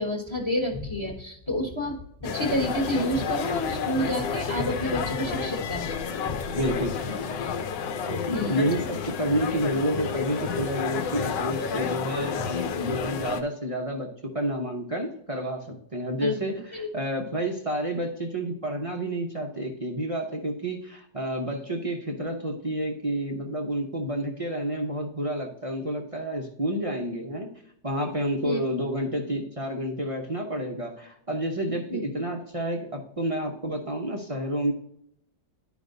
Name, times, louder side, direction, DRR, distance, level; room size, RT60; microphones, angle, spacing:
voice 1, 0.0-5.9 6.2-6.4 8.3-8.6 16.2-16.4 16.7-16.9 28.4-28.6 31.9-32.0, equal, 20° left, 0 dB, 1.0 m, -29 dB
sound 1, 2.2-13.4, left 6 dB, 75° left, 1.3 m, -31 dB
voice 2, 6.5-7.6 8.1-14.1 14.3-27.5 27.8-34.7, equal, 40° right, 0 dB, 0.4 m, -30 dB
11.5 x 5.1 x 2.6 m, 0.73 s
omnidirectional pair, 2.0 m